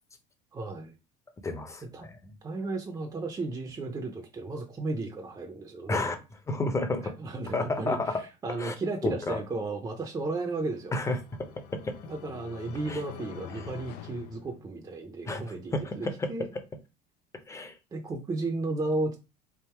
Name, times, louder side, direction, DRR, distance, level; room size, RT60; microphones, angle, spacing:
voice 1, 0.5-0.9 1.9-2.1 2.4-6.1 7.2-10.9 12.1-16.5 17.9-19.2, right 3 dB, 25° right, 3 dB, 0.7 m, -34 dB
voice 2, 1.4-2.3 5.9-6.2 6.5-7.1 7.5-8.2 8.6-8.7 9.0-9.4 10.9-11.9 12.9-13.0 13.5-13.7 15.3-15.4 15.7-16.3 17.5-17.8, left 2 dB, 20° left, 7 dB, 0.8 m, -31 dB
sound 1, 10.6-15.2, left 11 dB, 70° left, 0.6 m, -46 dB
3.6 x 2.7 x 4.4 m, 0.28 s
supercardioid pair, 110°, 16 cm